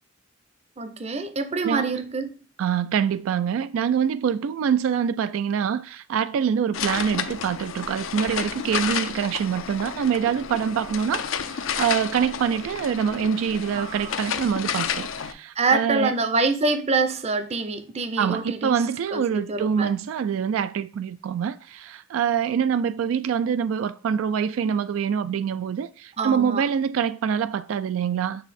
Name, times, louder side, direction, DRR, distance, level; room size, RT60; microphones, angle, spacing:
voice 1, 0.8-2.3 13.8-14.2 15.6-18.8 19.1-19.9 26.2-26.6, right 3 dB, 30° right, 0.6 m, -26 dB
voice 2, 2.6-16.2 18.2-28.4, right 7 dB, 75° right, 0.3 m, -25 dB
sound 1, 6.7-15.3, left 7 dB, 75° left, 0.6 m, -31 dB
7.6 x 3.5 x 4.1 m
head